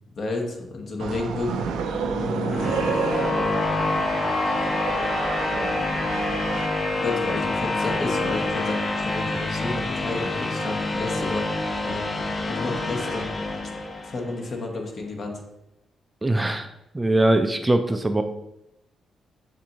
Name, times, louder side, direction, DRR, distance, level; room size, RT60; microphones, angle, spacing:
voice 1, 0.2-1.6 7.0-11.4 11.8-13.4 14.0-15.4, left 2 dB, 55° left, 2 dB, 1.1 m, -31 dB
sound 1, 1.0-6.7, right 7 dB, 85° right, 0.4 m, -30 dB
sound 2, 1.4-14.4, left 2 dB, 40° left, 0.6 m, -27 dB
voice 2, 16.2-16.7 16.9-18.2, right 1 dB, 20° right, 8 dB, 0.4 m, -21 dB
7.1 x 2.6 x 2.8 m, 0.85 s
cardioid pair, 70°, 0 cm